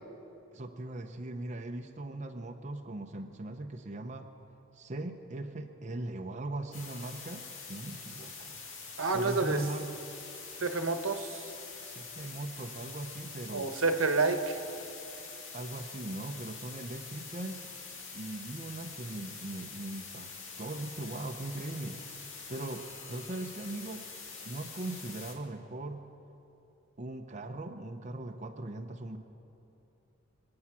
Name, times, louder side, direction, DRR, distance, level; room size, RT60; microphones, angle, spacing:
voice 1, 0.5-4.3 4.7-8.6 9.1-9.9 11.8-13.7 15.5-17.6 18.1-20.3 20.6-22.0 22.5-24.0 24.4-26.1 27.0-29.2, right 2 dB, 35° right, 4 dB, 0.7 m, -39 dB
sound 1, 6.7-25.3, left 4 dB, 70° left, 2.3 m, -45 dB
voice 2, 9.0-9.7 10.6-11.5 13.5-14.6, right 3 dB, 80° right, 7 dB, 1.2 m, -29 dB
26.0 x 8.7 x 6.0 m, 2.9 s
head